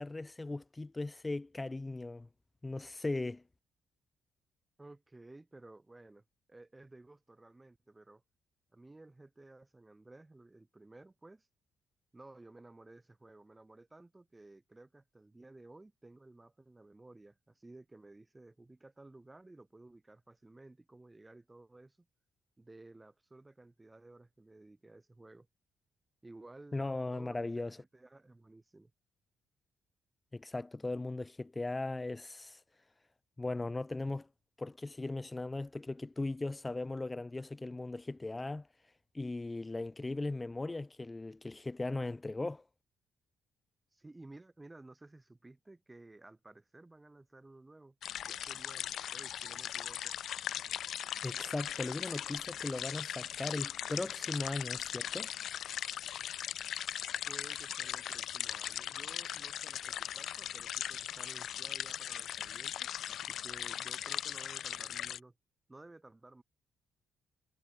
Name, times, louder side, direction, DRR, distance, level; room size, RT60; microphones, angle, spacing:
voice 1, 0.0-2.3 2.6-3.4 26.7-27.8 30.3-32.6 33.4-34.3 34.6-38.7 39.1-42.6 51.2-55.3, left 2 dB, 20° left, 0.7 m, -38 dB
voice 2, 4.8-6.2 6.5-8.2 8.7-11.5 12.1-22.0 22.6-25.5 26.2-26.8 27.1-28.9 43.9-48.0 48.2-50.2 57.3-65.3 65.7-66.4, right 2 dB, 15° right, 4.1 m, -55 dB
sound 1, 48.0-65.2, left 10 dB, 70° left, 0.8 m, -39 dB
cardioid pair, 90°, 0 cm